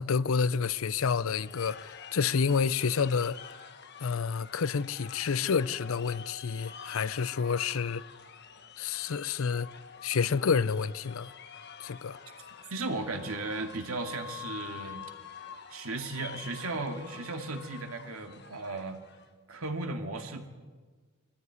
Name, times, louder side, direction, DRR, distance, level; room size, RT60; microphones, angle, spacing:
voice 1, 0.0-3.4 4.0-8.0 8.8-9.7 10.0-11.3 11.8-12.2, left 6 dB, 80° left, 0.5 m, -29 dB
sound 1, 1.3-19.3, left 7 dB, 50° left, 1.3 m, -47 dB
voice 2, 12.7-15.0 15.7-19.0 19.5-20.5, right 3 dB, 85° right, 2.3 m, -36 dB
23.0 x 14.5 x 9.6 m
head